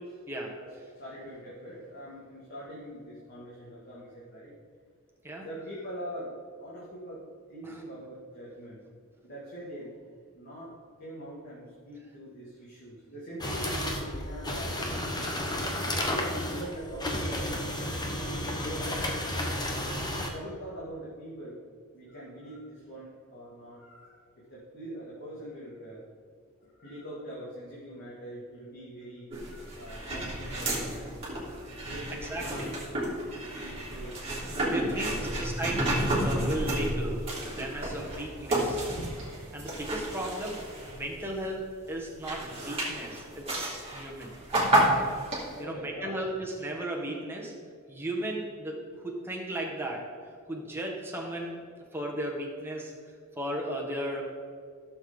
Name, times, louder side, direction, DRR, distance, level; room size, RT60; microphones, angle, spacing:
voice 1, 0.5-4.6 5.4-8.8 9.2-10.0 10.3-10.7 11.0-15.3 15.8-19.2 19.6-21.6 21.9-26.1 26.6-31.1 31.8-32.7 33.5-34.2 34.6-35.5 37.5-37.7 45.5-46.2, equal, 45° left, -8 dB, 2.4 m, -43 dB
sound 1, 13.4-20.3, left 1 dB, 20° left, 1.1 m, -32 dB
sound 2, 29.3-41.4 41.9-45.6, right 1 dB, 25° right, 2.8 m, -31 dB
voice 2, 32.1-32.7 34.7-37.2 37.5-38.8 39.5-40.6 40.8-44.4 45.6-47.5 47.9-50.1 50.5-51.6 51.9-52.9 53.4-54.3, right 1 dB, 10° right, -1 dB, 1.6 m, -35 dB
15.5 x 7.1 x 3.9 m, 2.1 s
head